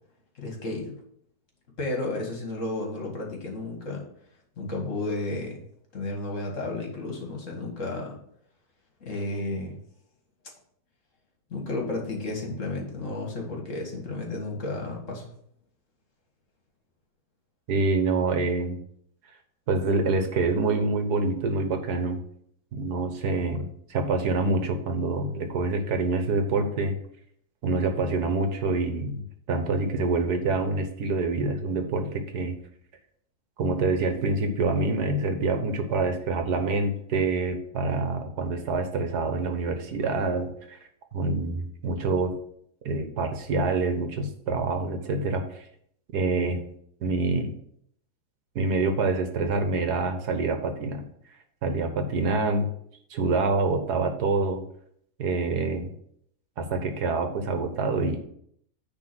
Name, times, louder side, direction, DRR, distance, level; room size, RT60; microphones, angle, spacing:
voice 1, 0.4-0.9 1.8-4.1 4.6-5.6 5.9-8.2 9.0-9.8 11.5-15.3, left 2 dB, 50° left, 1 dB, 2.1 m, -32 dB
voice 2, 17.7-18.8 19.7-22.2 22.7-26.9 27.6-32.6 33.6-40.8 41.1-42.3 42.9-45.7 46.1-46.6 47.0-47.5 48.6-51.1 51.6-52.7 53.1-54.6 55.2-55.9 56.6-58.2, right 3 dB, 85° right, 6 dB, 1.7 m, -26 dB
9.6 x 3.8 x 6.1 m, 0.67 s
omnidirectional pair, 1.7 m